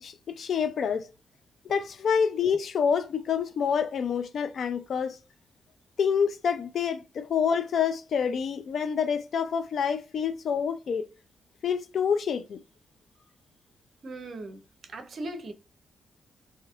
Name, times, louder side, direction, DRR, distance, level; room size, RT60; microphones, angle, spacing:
voice 1, 0.0-1.1 1.6-5.2 6.0-11.1 11.6-12.6, left 7 dB, 65° left, 0.4 m, -27 dB
voice 2, 14.0-14.6 14.9-15.5, right 2 dB, 55° right, 0.8 m, -38 dB
3.2 x 2.7 x 2.4 m
cardioid pair, 95°, 0 cm